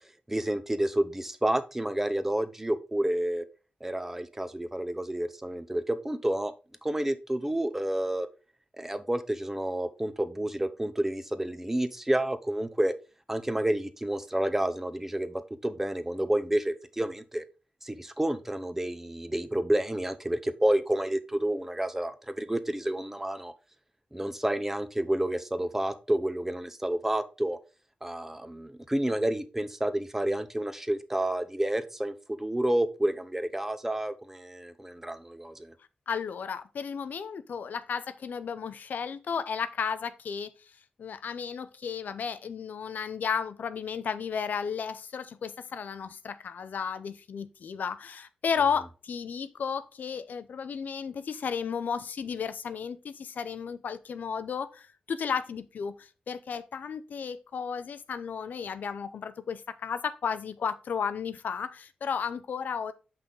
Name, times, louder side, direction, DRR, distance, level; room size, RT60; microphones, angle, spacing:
voice 1, 0.3-3.4 3.8-6.5 6.8-8.3 8.8-12.9 13.3-17.4 17.8-23.5 24.1-27.6 28.0-35.7, right 1 dB, 10° right, 0.7 m, -30 dB
voice 2, 36.1-40.5 41.0-62.9, left 6 dB, 90° left, 0.6 m, -33 dB
6.9 x 5.6 x 3.9 m
wide cardioid pair, 120°, 3 cm